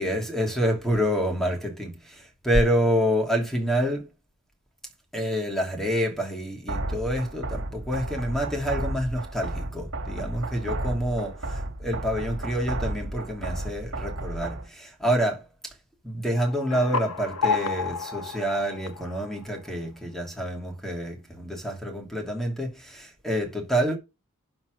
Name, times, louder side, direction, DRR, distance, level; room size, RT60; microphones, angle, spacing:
voice 1, 0.0-4.1 5.1-11.3 11.8-15.7 16.0-24.0, equal, ahead, 2.9 m, -27 dB
sound 1, 6.7-14.7, right 2 dB, 60° right, 2.5 m, -33 dB
sound 2, 16.4-19.7, left 5 dB, 80° left, 1.3 m, -31 dB
12.0 x 4.3 x 6.4 m
head